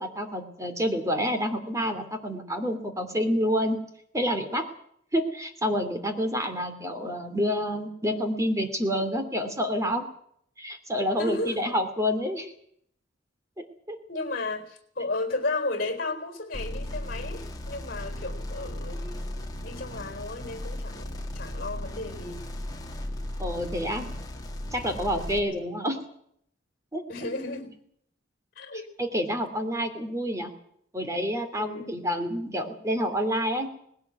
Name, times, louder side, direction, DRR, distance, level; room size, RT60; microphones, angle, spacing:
voice 1, 0.0-3.8 4.1-4.7 5.1-10.1 10.6-12.5 13.6-14.0 23.4-24.1 24.7-26.0 26.9-27.0 29.0-30.5 30.9-33.7, equal, 15° right, 2.8 m, -28 dB
voice 2, 11.2-11.6 14.1-22.5 25.3-25.6 27.1-27.8 28.6-28.8 31.6-31.9, left 2 dB, 50° left, 4.2 m, -34 dB
sound 1, 16.5-25.4, left 1 dB, 20° left, 2.6 m, -36 dB
19.5 x 17.0 x 8.2 m
head